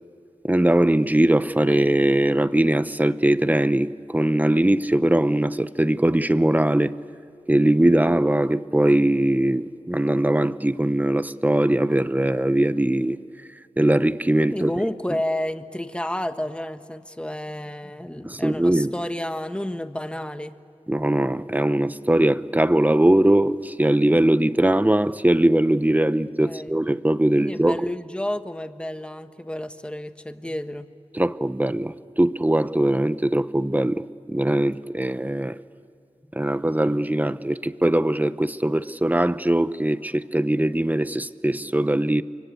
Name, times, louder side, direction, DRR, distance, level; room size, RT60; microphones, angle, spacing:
voice 1, 0.4-6.9 7.5-14.7 18.2-18.9 20.9-27.9 31.1-35.6 36.3-42.2, right 1 dB, 15° right, 0.9 m, -21 dB
voice 2, 14.5-20.5 26.4-26.7 27.4-30.9, left 1 dB, 10° left, 1.4 m, -30 dB
29.0 x 24.0 x 8.4 m
wide cardioid pair, 65°, 12 cm